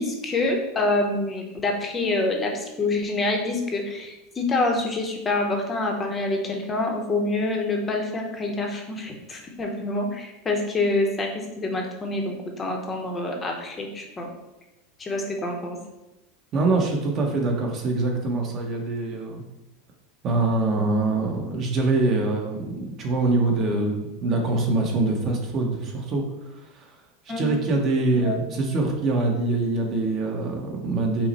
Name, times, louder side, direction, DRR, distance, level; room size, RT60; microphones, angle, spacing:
voice 1, 0.0-14.3 15.0-15.8 27.3-27.5 28.2-28.4, left 2 dB, 20° left, 2 dB, 0.7 m, -26 dB
voice 2, 16.5-19.4 20.2-26.9 27.4-31.3, right 2 dB, 35° right, 1 dB, 0.8 m, -24 dB
5.7 x 2.1 x 4.1 m, 0.98 s
supercardioid pair, 145°, 0 cm